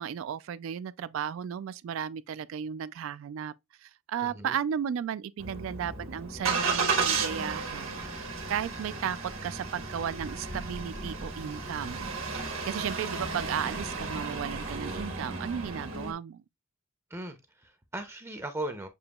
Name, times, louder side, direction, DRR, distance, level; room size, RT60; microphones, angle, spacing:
voice 1, 0.0-3.5 3.8-9.2 9.4-12.1 12.6-16.4, right 8 dB, 70° right, 0.3 m, -35 dB
voice 2, 4.2-4.6 17.1-18.9, right 1 dB, 10° right, 0.5 m, -38 dB
Engine starting, 5.4-16.1, right 4 dB, 85° right, 1.5 m, -33 dB
6.9 x 2.9 x 2.2 m
head